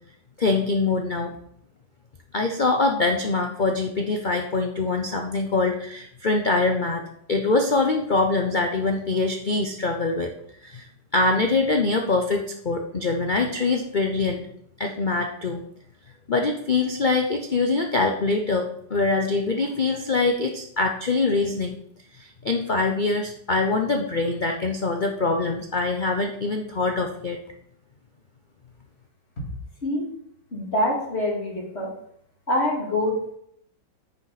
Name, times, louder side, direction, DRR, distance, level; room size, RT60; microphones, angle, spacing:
voice 1, 0.4-1.3 2.3-7.0 7.3-10.3 10.6-10.9 11.1-14.4 14.8-15.6 16.3-21.8 22.2-27.4, left 3 dB, 75° left, 4 dB, 0.4 m, -24 dB
voice 2, 30.5-31.9 32.5-33.3, left 1 dB, 35° left, -3 dB, 2.7 m, -25 dB
9.6 x 7.0 x 4.1 m, 0.70 s
omnidirectional pair, 2.0 m